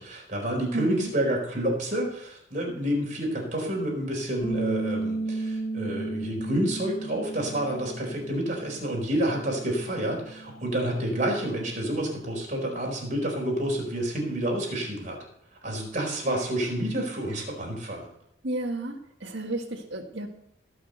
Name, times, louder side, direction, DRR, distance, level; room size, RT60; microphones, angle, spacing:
voice 1, 0.0-15.2 15.6-18.1, right 1 dB, 40° right, 0 dB, 4.4 m, -29 dB
voice 2, 0.7-1.1 18.4-20.3, right 2 dB, 70° right, 1 dB, 2.0 m, -32 dB
Bass guitar, 4.4-10.7, right 3 dB, 35° left, 2.3 m, -34 dB
17.5 x 6.3 x 8.0 m, 0.76 s
head